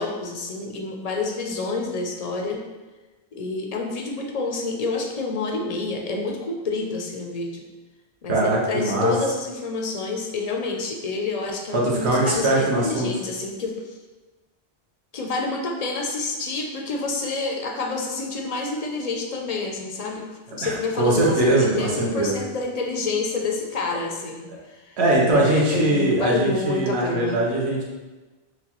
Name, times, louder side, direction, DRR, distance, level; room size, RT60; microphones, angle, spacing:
voice 1, 0.0-2.6 3.3-7.6 8.2-14.0 15.1-25.0 25.3-27.4, left 3 dB, 50° left, 1 dB, 0.5 m, -28 dB
voice 2, 8.3-9.1 11.7-13.1 20.6-22.3 25.0-27.8, right 1 dB, 80° right, -3 dB, 1.1 m, -21 dB
6.1 x 2.3 x 2.9 m, 1.2 s
omnidirectional pair, 1.1 m